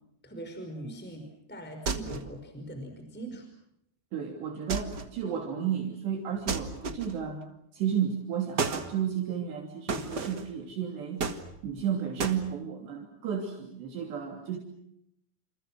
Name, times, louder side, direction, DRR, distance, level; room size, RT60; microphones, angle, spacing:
voice 1, 0.2-3.5, right 1 dB, ahead, 5 dB, 4.8 m, -41 dB
sound 1, 1.9-2.4 4.7-5.2 6.5-7.3 8.6-8.9 9.9-10.5 11.2-11.8 12.2-12.4, right 4 dB, 50° right, 1.2 m, -32 dB
voice 2, 4.1-7.4 7.7-11.2 11.6-14.6, right 8 dB, 75° right, 1 dB, 5.1 m, -32 dB
29.0 x 28.5 x 6.3 m, 0.78 s
omnidirectional pair, 5.1 m